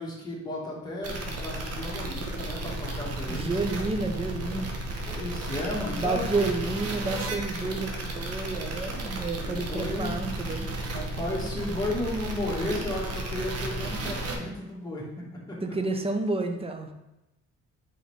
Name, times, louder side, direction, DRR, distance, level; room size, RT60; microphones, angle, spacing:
voice 1, 0.0-3.5 5.1-6.5 9.4-10.3 10.8-15.1 15.5-15.6, left 1 dB, 15° left, -5 dB, 1.6 m, -34 dB
sound 1, 1.0-14.4, right 2 dB, 55° right, 1.0 m, -34 dB
voice 2, 3.3-4.7 6.0-10.7 15.6-16.9, right 3 dB, 20° right, 5 dB, 0.6 m, -30 dB
4.1 x 3.9 x 3.2 m, 0.93 s
cardioid pair, 90°, 30 cm